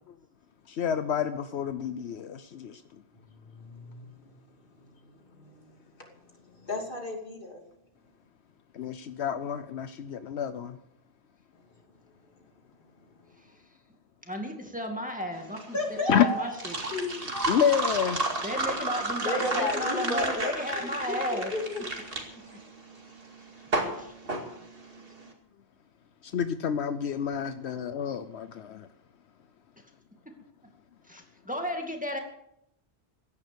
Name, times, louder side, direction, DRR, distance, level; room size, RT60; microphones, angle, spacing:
voice 1, 0.7-2.8 8.7-10.8 16.1-16.6 17.5-18.2 26.3-28.9, left 8 dB, 75° left, 1.0 m, -29 dB
voice 2, 3.6-4.1 6.6-7.6 15.7-16.5 16.9-17.5 19.2-21.8 22.5-22.6, left 2 dB, 50° left, 2.9 m, -32 dB
voice 3, 14.3-16.8 18.4-21.5 31.1-32.2, left 1 dB, 5° right, 2.1 m, -34 dB
sound 1, 15.4-25.2, right 2 dB, 60° right, 2.6 m, -32 dB
16.0 x 10.5 x 6.9 m
omnidirectional pair, 1.1 m